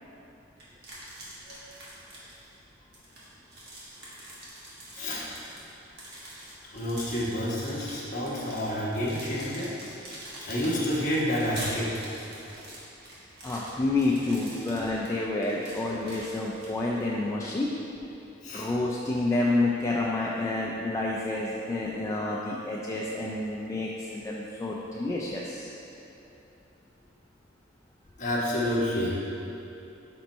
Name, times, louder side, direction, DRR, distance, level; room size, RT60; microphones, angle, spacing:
sound 1, 0.6-2.6 2.9-17.1, right 1 dB, 55° right, 1.3 m, -44 dB
voice 1, 4.9-5.3 6.7-10.0 10.4-12.0 18.4-18.7 28.2-29.2, equal, 40° left, -7 dB, 1.2 m, -29 dB
voice 2, 13.4-17.7 18.5-25.7, left 2 dB, 15° left, -4 dB, 0.3 m, -29 dB
5.2 x 4.4 x 4.1 m, 2.9 s
head